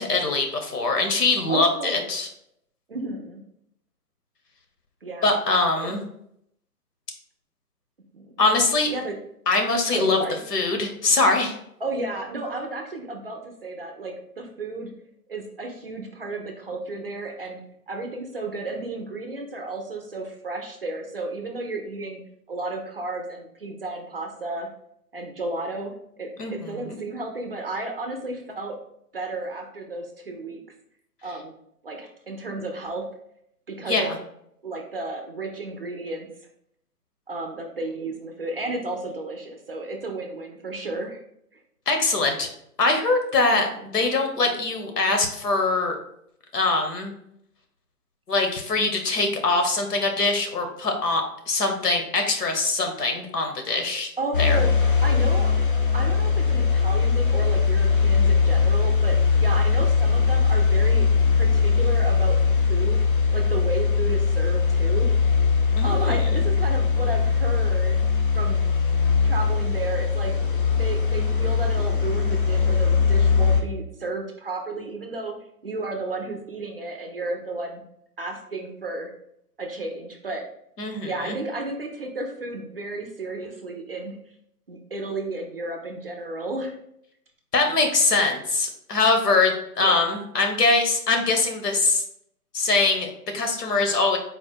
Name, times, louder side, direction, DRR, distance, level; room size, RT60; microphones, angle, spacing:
voice 1, 0.0-2.3 5.2-6.0 8.4-8.9 9.5-10.2 10.5-11.6 26.4-27.0 33.9-34.2 41.9-42.5 42.8-46.0 46.5-47.1 48.3-54.1 54.4-54.6 65.7-66.2 80.8-81.4 87.5-92.0 92.5-94.2, left 3 dB, 85° left, 4 dB, 1.2 m, -23 dB
voice 2, 1.5-2.1 2.9-3.4 5.0-5.4 5.8-5.9 8.1-8.3 8.9-9.2 9.9-10.4 11.8-14.9 15.3-17.6 17.9-22.2 22.5-24.7 25.1-28.8 29.1-30.6 31.2-31.5 31.8-33.1 33.7-34.1 34.6-36.3 37.3-41.2 41.5-41.6 54.2-54.7 55.0-55.5 55.9-61.1 61.4-62.4 62.7-63.0 63.3-65.1 65.8-68.0 68.3-68.6 69.2-70.3 70.8-75.4 75.6-77.8 78.2-79.1 79.6-80.5 81.0-84.2 84.7-86.8 89.8-90.2, right 2 dB, 40° right, 3 dB, 0.5 m, -33 dB
sound 1, 54.3-73.6, left 5 dB, 35° left, 0.4 m, -21 dB
4.1 x 2.2 x 4.3 m, 0.74 s
hypercardioid pair, 155°, 46 cm